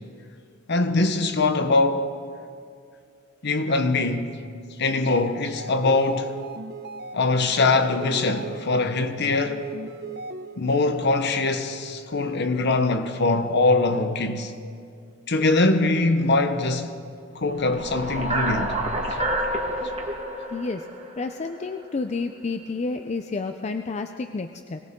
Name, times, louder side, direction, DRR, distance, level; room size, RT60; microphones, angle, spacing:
voice 1, 0.7-2.1 3.4-4.4 4.8-6.3 7.1-9.6 10.6-14.5 15.3-16.9 17.3-18.8, left 3 dB, 55° left, 0.9 m, -22 dB
sound 1, 5.0-10.8, right 2 dB, 55° right, 0.8 m, -38 dB
sound 2, 17.5-21.8, right 1 dB, 35° right, 1.5 m, -28 dB
voice 2, 20.5-20.9 21.2-24.8, left 3 dB, 35° left, 0.4 m, -30 dB
21.5 x 17.5 x 3.7 m
head